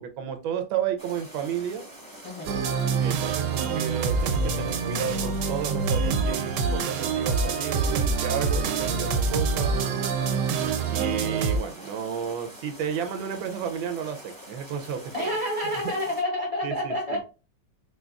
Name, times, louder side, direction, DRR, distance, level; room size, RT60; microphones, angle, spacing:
voice 1, 0.0-1.9 3.0-9.7 10.9-15.3 15.8-15.9 16.6-17.2, right 7 dB, 90° right, 1.4 m, -32 dB
sound 1, 1.0-16.2, right 1 dB, 15° right, 0.7 m, -45 dB
voice 2, 2.2-2.6 15.1-17.2, left 1 dB, 65° left, 0.3 m, -29 dB
sound 2, 2.5-11.6, right 5 dB, 75° right, 1.1 m, -26 dB
4.8 x 2.2 x 2.3 m
omnidirectional pair, 2.1 m